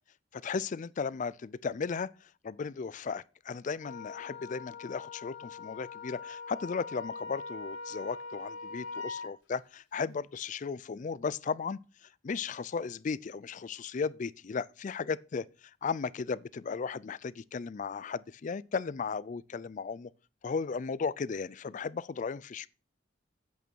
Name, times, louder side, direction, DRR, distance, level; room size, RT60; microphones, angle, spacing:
voice 1, 0.3-2.1 2.4-11.8 12.2-15.5 15.8-20.1 20.4-22.7, left 5 dB, 40° left, 0.4 m, -35 dB
Wind instrument woodwind instrument, 3.8-9.3, left 4 dB, 75° left, 2.5 m, -42 dB
8.6 x 8.2 x 4.5 m
head